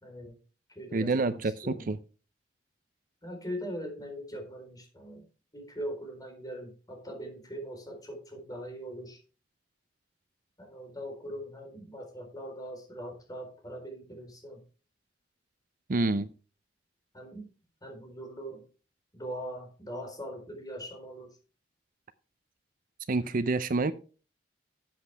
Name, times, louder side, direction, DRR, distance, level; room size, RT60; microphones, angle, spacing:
voice 1, 0.0-0.4 0.7-1.9 3.2-5.2 5.5-9.2 10.6-14.6 17.1-17.5 17.8-18.6 19.1-21.4, equal, 20° left, 4.2 m, -41 dB
voice 2, 0.9-2.0 15.9-16.3 23.1-23.9, right 3 dB, 50° right, 0.6 m, -27 dB
13.0 x 8.1 x 3.5 m
head